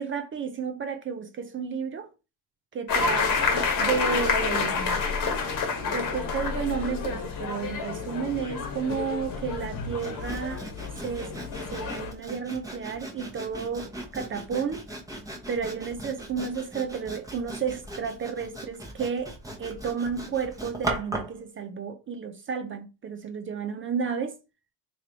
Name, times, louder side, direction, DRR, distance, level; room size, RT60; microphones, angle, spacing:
voice 1, 0.0-2.1 2.7-3.2 3.5-5.0 5.8-10.6 11.0-11.3 11.7-14.8 15.5-24.3, right 6 dB, 25° right, 0.4 m, -32 dB
sound 1, 2.9-12.1, left 5 dB, 40° left, 1.2 m, -29 dB
Sawing, 10.0-21.4, right 1 dB, 5° right, 0.9 m, -38 dB
3.1 x 3.0 x 3.9 m
cardioid pair, 115°, 48 cm